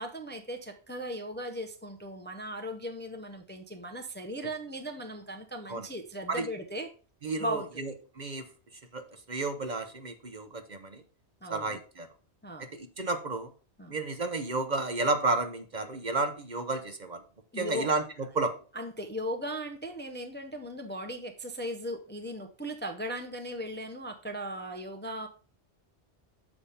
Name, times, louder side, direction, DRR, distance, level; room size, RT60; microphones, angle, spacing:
voice 1, 0.0-6.9 7.4-8.0 11.4-11.8 12.4-12.7 13.8-13.9 17.5-17.9 18.7-25.3, equal, 10° left, 5 dB, 0.6 m, -37 dB
voice 2, 7.2-8.5 8.9-11.0 11.5-12.1 12.6-13.5 13.9-17.2 17.5-18.5, right 3 dB, 45° right, 7 dB, 0.9 m, -32 dB
7.1 x 5.0 x 5.6 m, 0.39 s
omnidirectional pair, 1.2 m